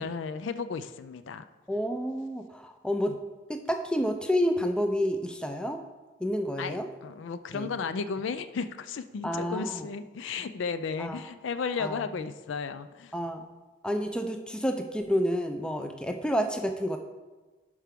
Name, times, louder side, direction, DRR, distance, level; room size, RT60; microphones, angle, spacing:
voice 1, 0.0-1.4 3.1-3.2 6.6-13.1, left 5 dB, 70° left, 12 dB, 0.4 m, -34 dB
voice 2, 1.7-3.2 3.5-5.8 6.2-6.9 7.5-7.7 9.2-9.9 11.0-11.2 11.8-12.0 13.1-13.4 13.8-17.0, equal, 5° left, 5 dB, 0.4 m, -29 dB
11.5 x 4.7 x 3.6 m, 1.2 s
head